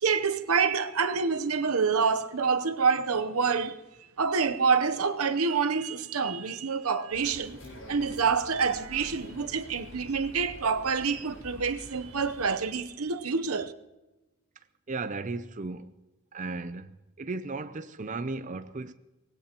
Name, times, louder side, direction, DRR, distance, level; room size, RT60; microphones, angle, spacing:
voice 1, 0.0-3.8 4.2-7.6 7.9-13.7, right 5 dB, 90° right, 0.9 m, -27 dB
sound 1, 7.1-12.7, left 1 dB, 75° left, 7.7 m, -47 dB
voice 2, 14.9-15.9 16.3-16.9 17.2-18.9, right 3 dB, 35° right, 0.5 m, -35 dB
24.5 x 18.5 x 3.0 m
head